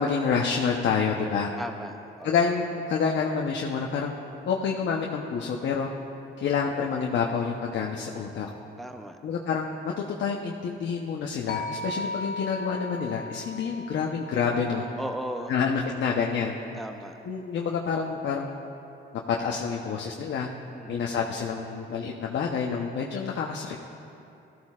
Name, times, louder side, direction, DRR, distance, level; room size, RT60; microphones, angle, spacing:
voice 1, 0.0-1.5 2.2-4.2 4.5-5.9 6.4-8.5 9.2-14.8 15.5-16.5 17.2-18.5 19.3-20.5 20.9-23.8, left 6 dB, 65° left, -1 dB, 0.9 m, -28 dB
voice 2, 1.6-2.4 8.8-9.2 15.0-15.5 16.8-17.1 20.7-21.0, right 1 dB, ahead, 5 dB, 0.6 m, -36 dB
sound 1, 11.5-15.7, left 2 dB, 50° left, 1.1 m, -37 dB
17.5 x 14.0 x 2.5 m, 2.8 s
cardioid pair, 90°, 20 cm